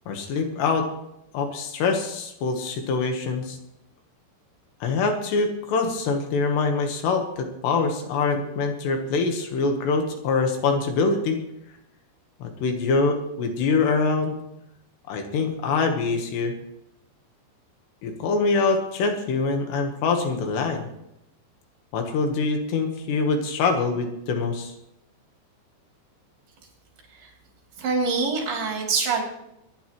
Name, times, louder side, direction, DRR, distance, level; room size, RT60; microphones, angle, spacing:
voice 1, 0.1-0.9 1.3-3.6 4.8-11.4 12.4-14.4 15.1-16.5 18.0-20.9 21.9-24.7, left 4 dB, 75° left, 5 dB, 3.3 m, -24 dB
voice 2, 27.8-29.2, right 4 dB, 60° right, 0 dB, 4.8 m, -25 dB
24.0 x 10.5 x 3.1 m, 0.83 s
omnidirectional pair, 5.2 m